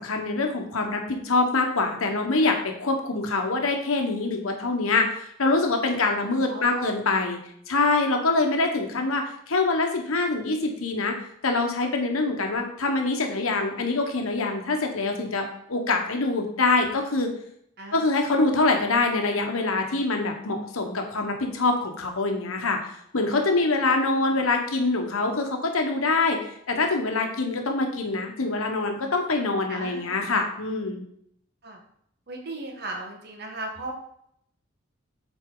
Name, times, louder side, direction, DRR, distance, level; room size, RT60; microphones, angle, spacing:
voice 1, 0.0-7.4 7.7-11.1 11.4-17.3 17.9-22.8 23.1-31.0, left 3 dB, 85° left, 3 dB, 1.2 m, -25 dB
voice 2, 6.5-7.0 17.8-18.2 24.1-24.4 29.7-30.2 31.6-31.8 32.3-33.9, right 2 dB, 50° right, 1 dB, 1.3 m, -36 dB
8.2 x 4.2 x 3.8 m, 0.71 s
head